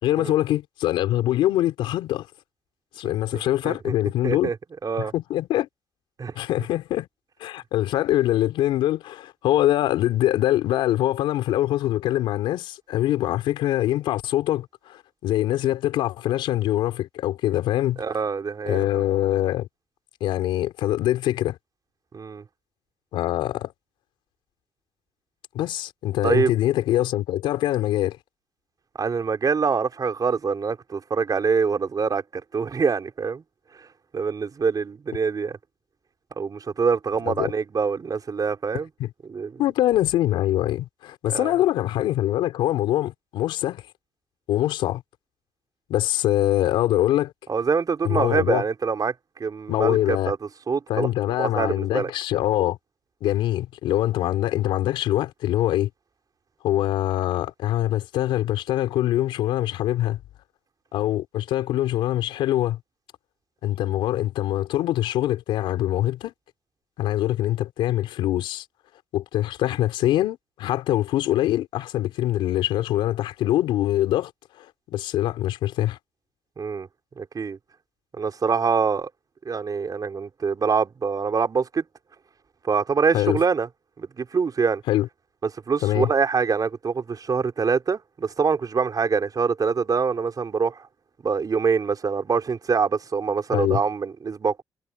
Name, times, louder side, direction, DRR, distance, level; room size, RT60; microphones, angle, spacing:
voice 1, 0.0-2.3 3.0-4.5 5.0-5.7 6.4-7.1 7.4-18.0 18.7-19.7 20.2-21.6 23.1-23.7 25.5-28.2 37.2-37.5 39.0-39.1 39.6-43.8 44.5-45.0 45.9-47.3 48.0-48.6 49.7-50.3 50.9-52.8 53.2-55.9 56.6-60.2 60.9-62.8 63.6-66.3 67.0-68.7 69.1-74.3 74.6-76.0 83.1-83.4 84.9-85.1 85.8-86.1 93.5-93.8, left 13 dB, 85° left, 4.0 m, -24 dB
voice 2, 3.3-3.9 4.2-4.5 4.8-5.1 6.2-6.3 18.0-18.8 22.1-22.4 26.2-26.5 29.0-32.2 32.5-33.4 33.8-33.9 34.1-35.6 36.4-38.9 39.3-39.6 41.3-41.6 47.5-49.1 49.4-50.4 50.7-51.1 51.4-52.1 76.6-76.9 77.2-77.6 78.1-79.1 79.4-81.8 82.6-83.7 84.0-84.8 85.5-90.8 91.2-94.6, right 5 dB, 50° right, 4.4 m, -25 dB
supercardioid pair, 55°, 8 cm